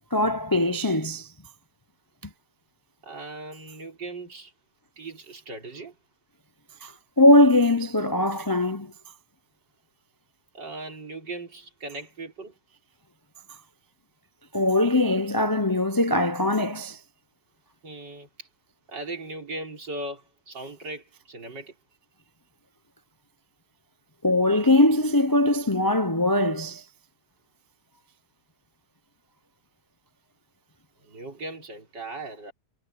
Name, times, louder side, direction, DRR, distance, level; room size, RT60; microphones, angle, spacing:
voice 1, 0.1-1.3 6.8-8.9 14.5-17.0 24.2-26.8, left 1 dB, 25° left, 0.4 m, -21 dB
voice 2, 3.0-4.5 5.0-6.0 10.5-12.5 17.8-18.5 18.9-21.8 31.0-32.5, right 2 dB, 75° right, 5.3 m, -38 dB
omnidirectional pair, 1.9 m